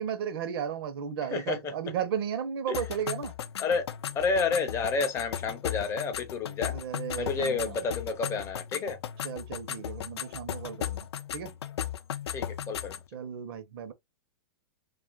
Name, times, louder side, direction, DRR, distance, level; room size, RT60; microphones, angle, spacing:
voice 1, 0.0-3.3 6.6-7.8 9.2-11.5 13.1-13.9, right 8 dB, 65° right, 0.7 m, -34 dB
voice 2, 1.3-1.7 2.7-2.8 3.6-3.9 4.1-6.8 7.2-9.0 12.3-13.0, left 4 dB, 20° left, 0.4 m, -30 dB
sound 1, 2.7-13.1, left 10 dB, 85° left, 0.4 m, -36 dB
2.7 x 2.4 x 2.3 m
hypercardioid pair, 140°, 13 cm